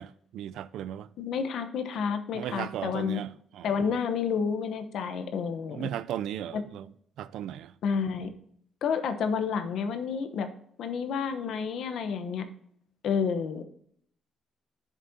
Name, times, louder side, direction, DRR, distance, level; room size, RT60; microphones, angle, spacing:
voice 1, 0.0-1.1 2.3-4.0 5.7-6.9 7.2-7.7, right 11 dB, 80° right, 0.4 m, -36 dB
voice 2, 1.2-3.2 3.6-5.9 6.5-6.6 7.8-8.3 8.8-10.5 10.8-12.5 13.0-13.6, left 6 dB, 75° left, 1.0 m, -30 dB
10.5 x 7.3 x 2.8 m
cardioid pair, 90°, 0 cm